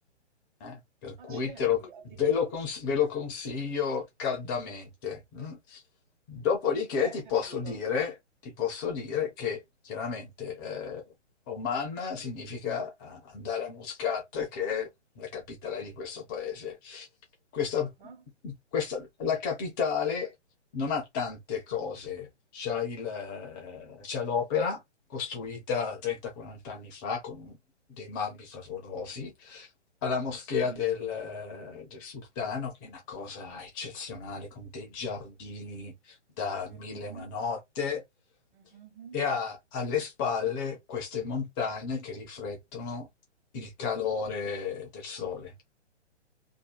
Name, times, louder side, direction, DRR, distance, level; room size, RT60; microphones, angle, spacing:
voice 1, 0.6-1.8 2.2-5.8 6.3-8.1 8.4-11.0 11.5-14.9 15.2-17.1 17.5-17.9 18.4-20.3 20.7-24.8 25.1-27.6 28.0-29.7 30.0-38.0 39.1-43.1 43.5-45.5, left 6 dB, 15° left, 0.7 m, -32 dB
voice 2, 1.2-2.6 7.0-7.2 7.5-7.8 18.0-18.2 30.6-30.8 36.7-37.3 38.5-39.2, right 6 dB, 45° right, 1.1 m, -48 dB
3.4 x 2.7 x 2.2 m
figure-of-eight pair, 130°, 36 cm